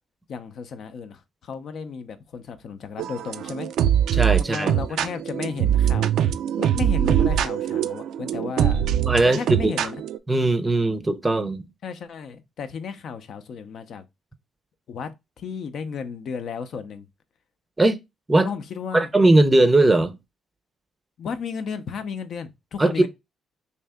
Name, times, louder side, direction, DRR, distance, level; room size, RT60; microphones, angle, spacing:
voice 1, 0.3-3.7 4.4-6.2 6.6-8.9 9.2-10.0 11.8-14.0 14.9-15.1 15.4-17.1 18.3-19.1 21.2-23.1, left 6 dB, 65° left, 0.6 m, -34 dB
sound 1, 3.0-10.2, right 10 dB, 80° right, 0.3 m, -23 dB
voice 2, 4.1-4.7 9.1-9.8 10.3-11.6 17.8-18.0 18.3-18.5 18.9-20.1 22.8-23.1, right 2 dB, 20° right, 0.5 m, -19 dB
3.2 x 2.7 x 3.4 m
cardioid pair, 90°, 0 cm